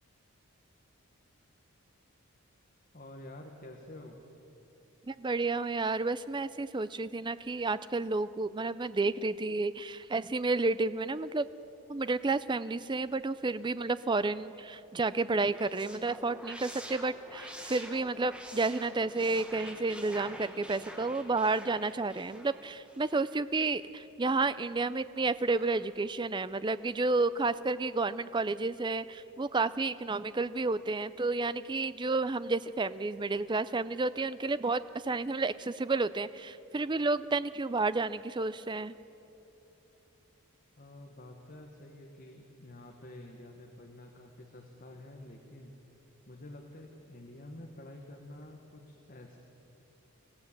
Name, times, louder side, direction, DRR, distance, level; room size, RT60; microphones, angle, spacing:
voice 1, 2.9-4.2 40.8-45.8 46.3-49.4, left 1 dB, 40° left, 2 dB, 1.5 m, -49 dB
voice 2, 5.1-11.5 11.9-38.9, right 3 dB, 20° right, 14 dB, 0.4 m, -31 dB
sound 1, 15.3-23.4, equal, 5° right, 1.4 m, -47 dB
sound 2, 25.2-25.9, right 2 dB, 45° right, 3.5 m, -58 dB
25.5 x 15.5 x 7.4 m, 3.0 s
head